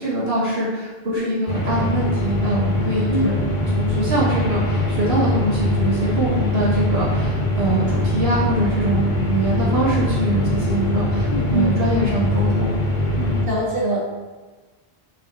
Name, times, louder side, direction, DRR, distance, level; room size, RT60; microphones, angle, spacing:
voice 1, 0.0-3.4 3.8-12.8 13.2-13.4, right 1 dB, 80° right, -7 dB, 2.2 m, -23 dB
sound 1, 1.5-13.5, left 1 dB, 50° left, 1.4 m, -22 dB
voice 2, 11.3-11.7 13.4-14.0, right 1 dB, 60° right, -5 dB, 2.4 m, -22 dB
7.7 x 6.5 x 4.1 m, 1.3 s
omnidirectional pair, 1.0 m